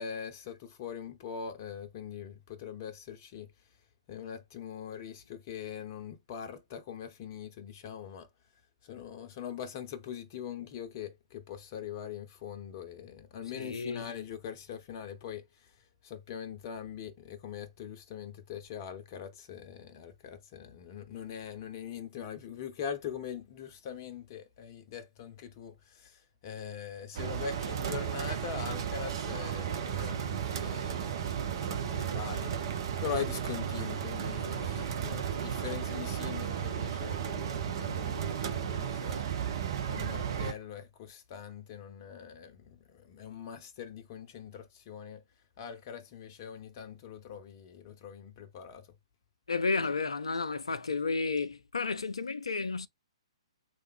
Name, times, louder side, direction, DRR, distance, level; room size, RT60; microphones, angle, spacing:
voice 1, 0.0-3.5 4.1-8.3 8.8-31.2 31.6-39.3 39.9-45.2 45.6-48.9, left 8 dB, 35° left, 0.7 m, -42 dB
voice 2, 13.6-14.1 49.5-52.9, left 4 dB, 75° left, 0.5 m, -32 dB
sound 1, 27.1-40.5, right 8 dB, 45° right, 0.9 m, -34 dB
3.3 x 2.6 x 3.5 m
figure-of-eight pair, 125°, 3 cm